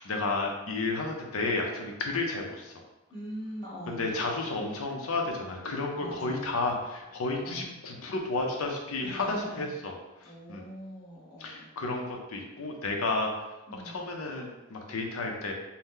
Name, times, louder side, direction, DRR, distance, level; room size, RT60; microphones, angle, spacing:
voice 1, 0.0-2.8 3.9-9.9 10.2-10.6 11.4-13.3 13.7-15.5, left 3 dB, 80° left, 2 dB, 0.6 m, -32 dB
voice 2, 3.1-4.1 5.9-6.5 7.4-7.7 9.0-9.6 10.2-11.7 13.7-14.1, equal, 20° left, -8 dB, 1.0 m, -42 dB
2.8 x 2.1 x 3.6 m, 1.0 s
head